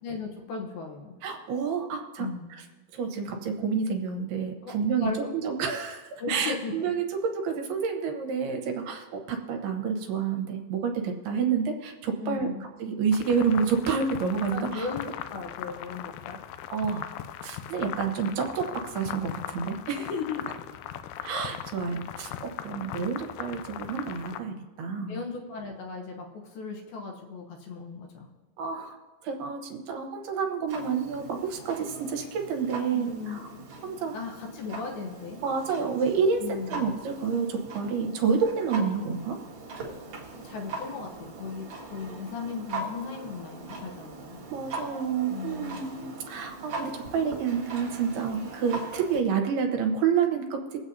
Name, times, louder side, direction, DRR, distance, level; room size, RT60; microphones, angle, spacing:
voice 1, 0.0-1.2 2.2-2.5 4.6-4.7 5.0-5.3 6.2-6.7 12.2-12.6 14.5-16.4 20.0-20.5 25.1-28.3 32.9-33.4 34.1-35.4 36.4-36.9 40.4-44.4 45.3-45.8, left 4 dB, 70° left, 2 dB, 2.7 m, -36 dB
voice 2, 1.2-2.6 2.9-12.5 12.8-14.9 16.7-17.1 17.4-20.1 21.2-25.2 28.6-29.0 29.2-33.5 33.8-34.2 34.8-34.9 35.4-39.4 44.5-50.8, right 6 dB, 75° right, 3 dB, 3.0 m, -29 dB
sound 1, 13.1-24.4, left 11 dB, 90° left, 2.1 m, -39 dB
Clock, 30.7-49.2, right 3 dB, 50° right, 1.9 m, -41 dB
23.5 x 8.0 x 2.7 m, 1.3 s
omnidirectional pair, 4.7 m